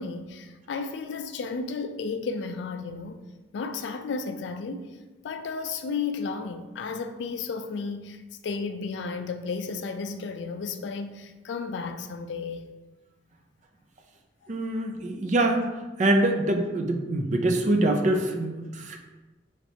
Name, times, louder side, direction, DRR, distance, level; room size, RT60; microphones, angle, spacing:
voice 1, 0.0-3.2 3.5-4.9 5.2-12.7, left 4 dB, 75° left, 0.3 m, -33 dB
voice 2, 14.5-15.7 16.0-19.0, right 1 dB, 40° right, 0.4 m, -24 dB
4.3 x 3.2 x 2.7 m
head